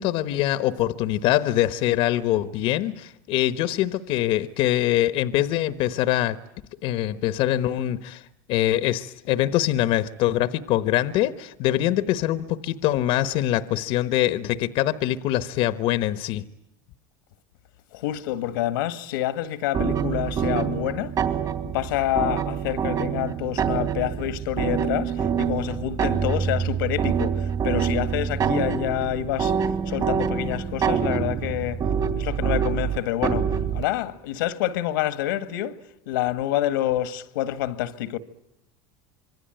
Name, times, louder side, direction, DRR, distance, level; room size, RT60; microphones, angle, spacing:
voice 1, 0.0-6.4 6.8-8.2 8.5-16.4, left 13 dB, 60° left, 1.1 m, -23 dB
voice 2, 17.9-21.1 21.6-31.8 32.2-35.8 36.1-38.2, left 13 dB, 85° left, 1.6 m, -27 dB
sound 1, 19.7-33.9, right 7 dB, 40° right, 3.2 m, -26 dB
26.5 x 23.5 x 9.0 m
supercardioid pair, 115°, 11 cm